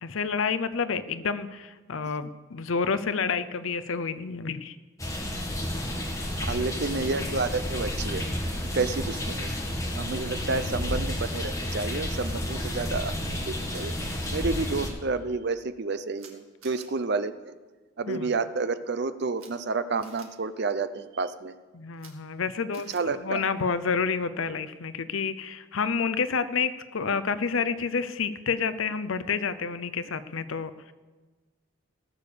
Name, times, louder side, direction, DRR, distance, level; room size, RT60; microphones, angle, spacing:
voice 1, 0.0-4.8 5.3-5.5 18.1-18.3 21.7-30.9, left 5 dB, 70° left, 13 dB, 0.6 m, -29 dB
sound 1, 5.0-14.9, left 1 dB, 15° left, 1.6 m, -31 dB
voice 2, 6.4-8.2 8.7-9.5 9.9-13.9 14.3-17.5 18.0-21.5 22.9-23.4, right 3 dB, 50° right, 12 dB, 0.6 m, -30 dB
Camera, 11.8-12.3 13.7-13.8 14.1-14.3 16.2-16.3 16.6-16.9 19.3-19.5 20.0-20.3 21.9-22.1 22.7-23.0, right 7 dB, 80° right, 2.2 m, -50 dB
18.0 x 7.1 x 6.7 m, 1.3 s
head